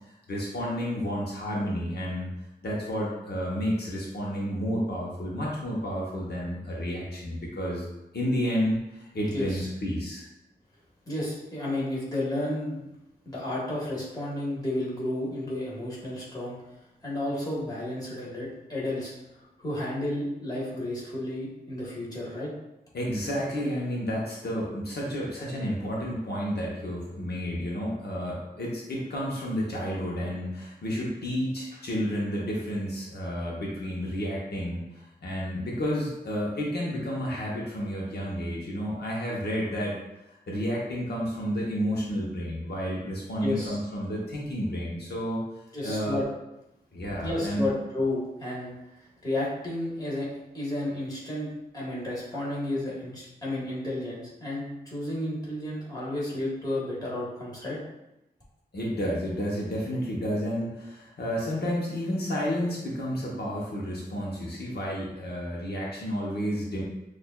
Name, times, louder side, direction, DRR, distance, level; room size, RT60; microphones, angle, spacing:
voice 1, 0.3-2.3 2.6-7.9 8.1-10.2 22.9-40.0 40.5-45.4 45.8-46.2 46.9-47.7 58.7-66.8, equal, 80° left, -4 dB, 0.8 m, -31 dB
voice 2, 9.3-9.6 11.1-12.9 13.2-16.6 17.0-19.1 19.6-22.5 43.4-43.8 45.7-46.2 47.2-48.7 49.2-50.3 50.5-57.8, left 1 dB, 25° left, -6 dB, 1.5 m, -32 dB
6.3 x 2.4 x 2.3 m, 0.93 s
wide cardioid pair, 100°, 17 cm